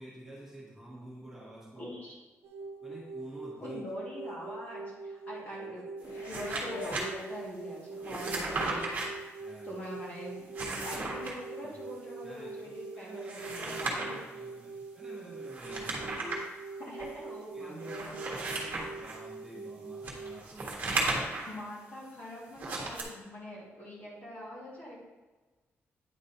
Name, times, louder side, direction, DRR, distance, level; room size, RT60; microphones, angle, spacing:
voice 1, 0.0-1.9 2.8-3.8 9.4-9.8 11.6-11.8 12.2-16.4 17.0-17.1 17.5-21.2, right 1 dB, 10° right, -7 dB, 1.5 m, -49 dB
voice 2, 1.8-2.1 3.6-9.0 9.6-14.2 16.8-18.2 21.5-25.0, equal, 35° left, -6 dB, 2.5 m, -43 dB
sound 1, 2.4-20.5, right 4 dB, 60° right, 0.6 m, -44 dB
sound 2, 6.0-8.1 8.6-8.7, left 6 dB, 85° left, 0.5 m, -46 dB
sound 3, 6.0-7.0 8.0-9.1 10.4-11.3 13.1-14.2 15.5-16.5 17.0-17.1 17.8-19.2 20.0-21.5 22.5-23.0, right 2 dB, 35° right, 1.4 m, -35 dB
9.3 x 3.9 x 4.3 m, 1.2 s
wide cardioid pair, 175°, 5 cm